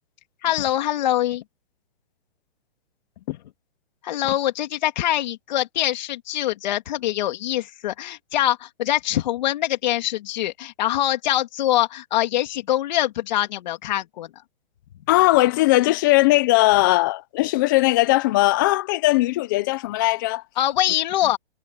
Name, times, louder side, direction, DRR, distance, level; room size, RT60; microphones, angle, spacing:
voice 1, 0.4-1.4 4.0-14.3 20.6-21.4, left 13 dB, 45° left, 3.1 m, -24 dB
voice 2, 15.1-20.4, left 19 dB, 20° left, 0.6 m, -19 dB
hypercardioid pair, 165°, 31 cm